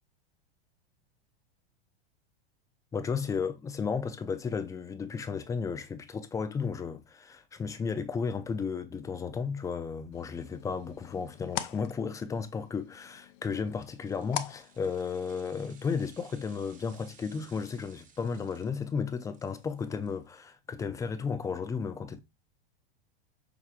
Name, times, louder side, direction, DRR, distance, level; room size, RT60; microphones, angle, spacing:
voice 1, 2.9-22.2, left 5 dB, 10° left, 0.4 m, -34 dB
sound 1, 10.1-15.5, left 12 dB, 60° left, 0.6 m, -42 dB
sound 2, 13.6-20.8 21.2-21.3, right 6 dB, 25° right, 1.1 m, -60 dB
5.8 x 3.3 x 2.4 m
hypercardioid pair, 120°, 31 cm